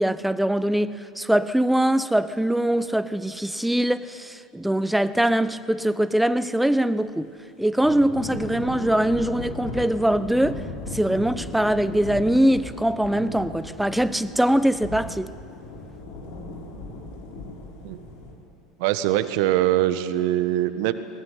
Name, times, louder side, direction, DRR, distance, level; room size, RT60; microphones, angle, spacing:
voice 1, 0.0-7.3 7.6-10.6 10.9-15.3, right 1 dB, 5° right, 0.8 m, -22 dB
Thunder / Rain, 7.8-18.3, left 2 dB, 60° left, 4.5 m, -37 dB
voice 2, 18.8-20.9, right 14 dB, 60° right, 1.2 m, -22 dB
20.0 x 19.5 x 9.6 m
hypercardioid pair, 80°, 3 cm